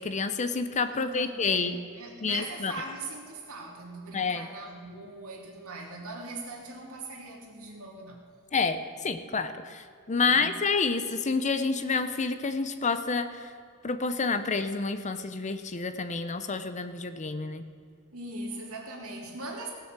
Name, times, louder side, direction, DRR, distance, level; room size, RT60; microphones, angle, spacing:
voice 1, 0.0-1.8 2.2-2.7 4.1-4.5 8.5-13.5 13.8-17.6, left 4 dB, 35° left, 11 dB, 0.6 m, -29 dB
voice 2, 0.9-8.2 10.3-10.6 18.1-19.7, right 2 dB, 70° right, 0 dB, 2.5 m, -40 dB
17.0 x 6.8 x 7.4 m, 2.2 s
head